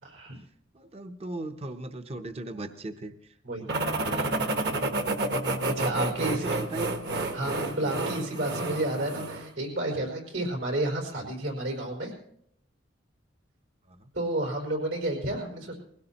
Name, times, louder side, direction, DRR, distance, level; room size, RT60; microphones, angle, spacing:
voice 1, 0.0-0.4 3.4-3.7 5.8-6.6 7.3-12.1 14.1-15.8, right 1 dB, 85° right, 1 dB, 4.9 m, -31 dB
voice 2, 0.7-3.3 3.6-4.6 6.0-7.0 13.9-14.1, right 2 dB, 30° right, 8 dB, 0.7 m, -39 dB
sound 1, 3.7-9.5, right 2 dB, 55° right, 1.2 m, -30 dB
20.5 x 17.0 x 2.9 m, 0.69 s
head